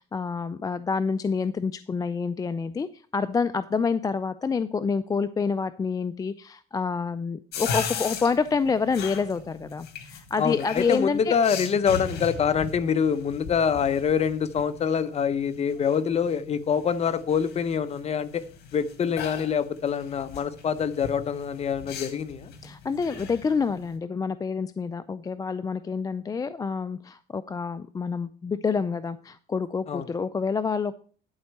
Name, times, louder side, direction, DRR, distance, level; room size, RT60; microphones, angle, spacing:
voice 1, 0.0-11.3 22.6-30.9, left 5 dB, 20° left, 13 dB, 0.4 m, -28 dB
sound 1, 7.5-24.0, left 6 dB, 75° left, 1.8 m, -39 dB
voice 2, 10.4-18.4 18.7-22.5 29.9-30.0, left 7 dB, 40° left, 12 dB, 0.8 m, -25 dB
11.0 x 4.5 x 6.5 m, 0.44 s
cardioid pair, 110°, 17 cm